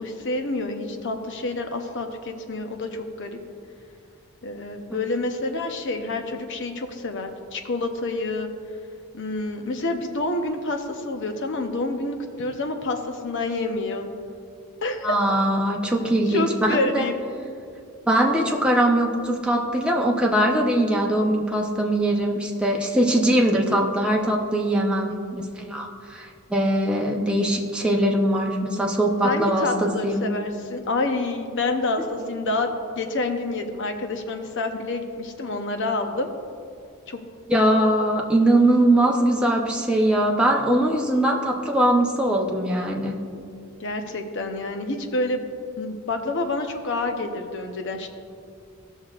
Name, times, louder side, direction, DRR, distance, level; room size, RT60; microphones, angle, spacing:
voice 1, 0.0-3.4 4.4-8.5 9.1-14.1 14.8-15.2 16.3-17.2 29.2-36.3 37.1-37.2 43.8-45.4 45.8-48.1, left 2 dB, 55° left, 5 dB, 0.7 m, -28 dB
voice 2, 15.0-17.1 18.1-30.2 37.5-43.1, right 1 dB, 5° right, -1 dB, 0.7 m, -21 dB
16.0 x 6.3 x 2.4 m, 2.4 s
head